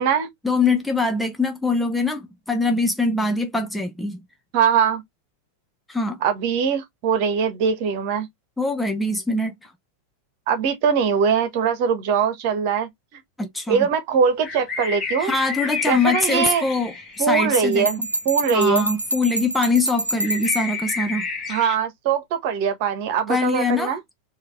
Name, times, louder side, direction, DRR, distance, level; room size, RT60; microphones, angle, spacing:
voice 1, 0.4-4.2 5.9-6.2 8.6-9.6 13.4-13.9 15.2-18.1 18.5-21.3 23.3-23.9, left 3 dB, 5° left, 0.7 m, -23 dB
voice 2, 4.5-5.0 6.2-8.3 10.5-12.9 13.7-15.3 15.9-16.7 17.2-18.0 18.2-18.9 21.5-24.0, right 7 dB, 45° right, 1.5 m, -21 dB
sound 1, 14.4-17.4 20.2-21.8, left 4 dB, 25° left, 1.4 m, -30 dB
Bell, 17.5-20.7, right 1 dB, 85° right, 0.8 m, -27 dB
4.7 x 2.9 x 3.4 m
figure-of-eight pair, 90°, 0 cm